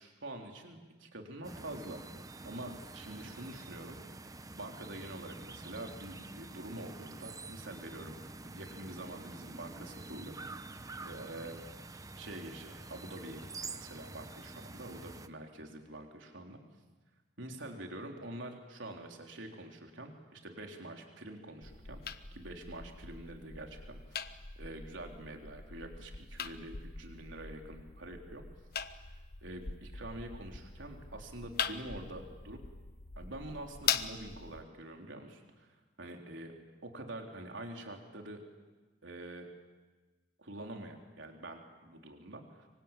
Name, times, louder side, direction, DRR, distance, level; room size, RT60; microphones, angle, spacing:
voice 1, 0.0-2.0 2.4-8.2 8.4-11.6 12.2-16.6 17.4-24.0 24.6-28.4 29.0-29.1 29.4-32.6 33.2-36.5 36.8-38.4 39.0-39.5 40.4-42.7, right 1 dB, 80° right, 2 dB, 3.9 m, -46 dB
sound 1, 1.4-15.3, right 3 dB, 20° right, 0.9 m, -47 dB
sound 2, 21.6-34.6, left 7 dB, 50° left, 1.1 m, -41 dB
25.5 x 24.5 x 9.1 m, 1.3 s
head